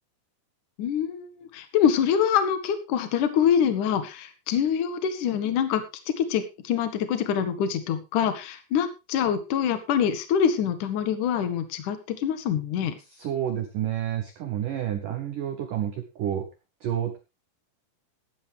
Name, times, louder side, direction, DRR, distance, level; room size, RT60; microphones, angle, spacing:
voice 1, 0.8-13.0, left 8 dB, 60° left, 10 dB, 2.1 m, -25 dB
voice 2, 13.2-16.5 16.8-17.2, right 10 dB, 85° right, 8 dB, 1.8 m, -29 dB
15.5 x 11.0 x 3.5 m, 0.27 s
omnidirectional pair, 6.0 m